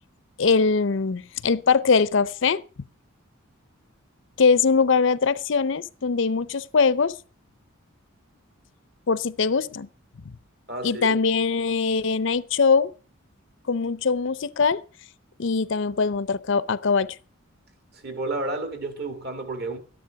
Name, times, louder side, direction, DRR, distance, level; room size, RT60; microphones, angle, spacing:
voice 1, 0.4-2.6 4.4-7.2 9.1-9.9 10.8-12.9 13.7-14.8 15.4-17.1, left 5 dB, 60° left, 0.5 m, -22 dB
voice 2, 10.7-11.2 17.9-19.8, right 2 dB, 50° right, 2.3 m, -31 dB
13.0 x 10.5 x 5.8 m
head